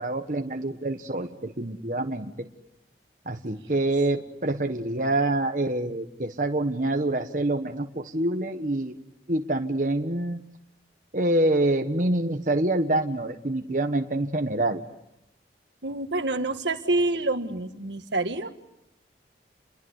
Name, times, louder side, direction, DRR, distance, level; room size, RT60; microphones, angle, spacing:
voice 1, 0.0-2.5 3.2-8.9 9.3-10.4 11.1-14.8, right 1 dB, 45° right, 5 dB, 1.4 m, -26 dB
voice 2, 15.8-18.5, right 2 dB, 80° right, 7 dB, 1.8 m, -27 dB
29.5 x 22.5 x 8.2 m, 0.85 s
head